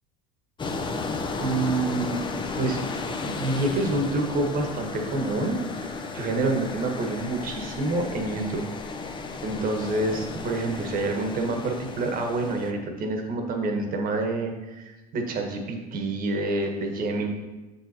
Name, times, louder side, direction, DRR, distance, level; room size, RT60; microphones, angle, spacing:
sound 1, 0.6-12.7, left 3 dB, 25° left, 0.8 m, -34 dB
voice 1, 1.4-2.2 2.6-2.8 3.2-8.7 9.4-17.3, right 2 dB, 45° right, 4 dB, 1.4 m, -27 dB
7.1 x 6.9 x 2.8 m, 1.1 s
hypercardioid pair, 80°, 20 cm